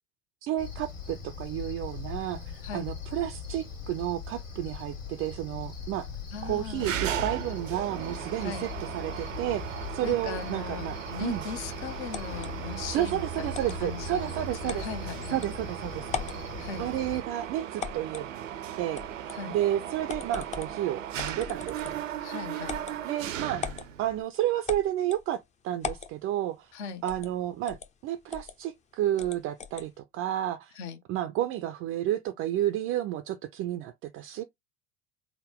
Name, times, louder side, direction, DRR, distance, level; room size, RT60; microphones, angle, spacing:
voice 1, 0.4-6.1 6.4-11.4 12.9-14.9 15.3-16.2 16.8-18.5 18.8-22.0 23.0-23.7 24.0-26.7 27.0-27.8 28.0-30.8 31.1-34.4, right 12 dB, 35° right, 0.4 m, -31 dB
Cricket, 0.6-17.2, left 4 dB, 85° left, 1.7 m, -40 dB
voice 2, 6.3-7.0 8.4-8.7 10.0-15.4 16.6-16.9 19.3-19.6 22.2-22.8 26.7-27.0 30.8-31.0, left 6 dB, 65° left, 0.9 m, -39 dB
Mechanisms, 6.8-24.2, right 10 dB, 80° right, 0.6 m, -37 dB
sound 1, 12.1-12.5 13.5-13.8 14.7-14.9 15.4-15.5 16.0-16.4 17.8-18.3 19.0-19.4 20.1-20.7 21.2-22.1 22.6-23.0 23.6-23.9 24.7-25.2 25.8-26.1 27.1-27.3 27.7-27.9 28.3-28.5 29.2-29.9, left 6 dB, 20° left, 0.5 m, -38 dB
3.6 x 2.1 x 3.5 m
hypercardioid pair, 75°, 38 cm